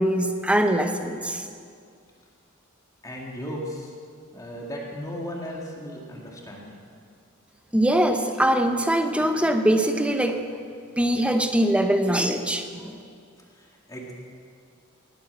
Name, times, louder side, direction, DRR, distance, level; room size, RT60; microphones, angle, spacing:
voice 1, 0.0-1.4 7.7-10.4 11.0-13.0, right 1 dB, 5° right, 6 dB, 0.9 m, -22 dB
voice 2, 3.0-3.9 4.3-6.7 13.5-14.1, equal, 15° left, -2 dB, 2.2 m, -36 dB
19.0 x 9.2 x 7.5 m, 2.2 s
head